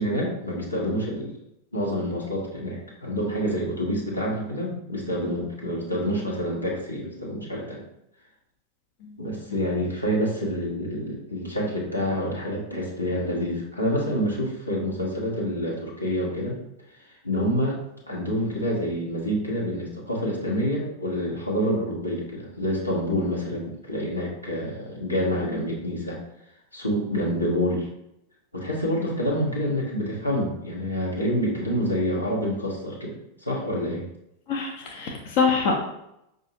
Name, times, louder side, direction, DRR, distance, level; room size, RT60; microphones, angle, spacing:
voice 1, 0.0-1.3 1.7-7.8 9.2-16.6 17.2-17.8 18.1-26.2 26.7-27.9 28.5-34.0, equal, 85° left, -3 dB, 1.1 m, -27 dB
voice 2, 34.5-35.7, left 5 dB, 45° left, 1 dB, 0.6 m, -25 dB
5.5 x 2.5 x 2.7 m, 0.82 s
figure-of-eight pair, 90°, 0 cm